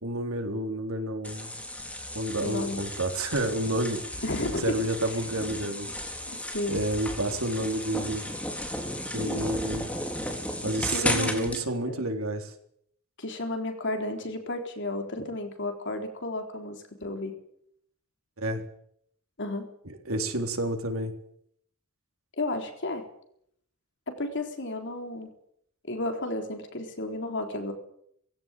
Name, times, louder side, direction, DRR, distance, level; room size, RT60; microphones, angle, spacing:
voice 1, 0.0-1.5 2.1-4.0 4.6-5.9 6.7-8.2 9.1-9.8 10.6-12.5 18.4-18.6 20.1-21.1, right 1 dB, 80° right, 4 dB, 3.7 m, -30 dB
sound 1, 1.2-11.6, left 1 dB, 5° left, 3.9 m, -34 dB
voice 2, 2.4-2.8 4.2-4.8 5.1-5.2 6.3-6.8 9.2-9.5 10.9-11.6 11.9-12.1 13.2-17.4 19.4-19.7 22.4-23.1 24.1-25.3 25.9-27.7, left 2 dB, 55° left, 5 dB, 3.9 m, -33 dB
19.5 x 16.5 x 9.1 m, 0.68 s
head